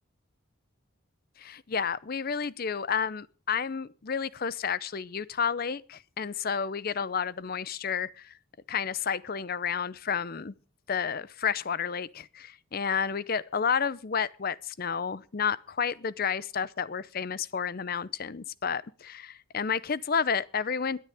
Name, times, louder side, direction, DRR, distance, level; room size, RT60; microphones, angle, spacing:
voice 1, 1.4-8.3 8.7-10.5 10.9-21.0, left 6 dB, 45° left, 0.6 m, -31 dB
22.0 x 10.5 x 3.5 m
head